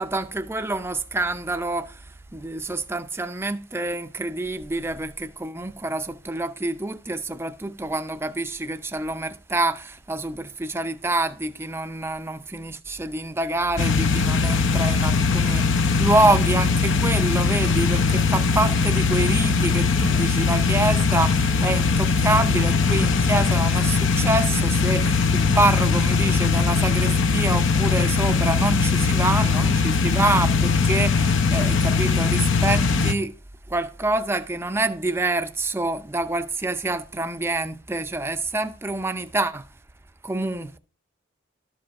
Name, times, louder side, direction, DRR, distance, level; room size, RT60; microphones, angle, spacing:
voice 1, 0.0-33.4 33.7-39.7 40.2-40.8, right 2 dB, 10° right, 0.5 m, -26 dB
sound 1, 13.8-33.1, left 4 dB, 65° left, 0.8 m, -20 dB
12.0 x 5.1 x 5.8 m
head